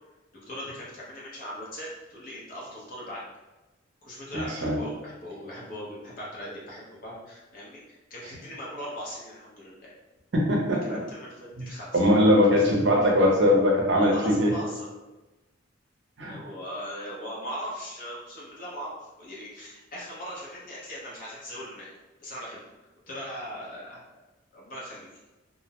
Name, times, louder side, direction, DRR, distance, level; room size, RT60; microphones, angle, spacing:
voice 1, 0.5-3.3 4.0-9.9 10.8-12.0 13.2-13.3 14.0-14.9 16.3-21.9 22.2-22.6 23.1-24.0 24.5-25.1, equal, 45° left, -6 dB, 0.8 m, -39 dB
voice 2, 4.3-4.8 10.3-11.0 11.6-11.7 11.9-14.5 16.2-16.4, left 1 dB, 65° right, -2 dB, 0.6 m, -21 dB
2.5 x 2.0 x 2.8 m, 1.1 s
head